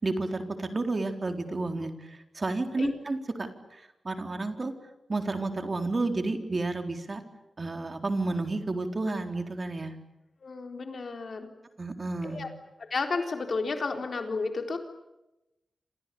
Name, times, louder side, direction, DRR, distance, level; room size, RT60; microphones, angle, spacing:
voice 1, 0.0-4.7 5.1-7.2 7.6-10.0 11.8-12.5, right 2 dB, 35° right, 6 dB, 3.9 m, -31 dB
voice 2, 10.4-11.5 12.2-12.5 12.9-14.8, left 4 dB, 55° left, 5 dB, 4.1 m, -32 dB
28.5 x 28.0 x 7.1 m, 0.93 s
wide cardioid pair, 110°, 0 cm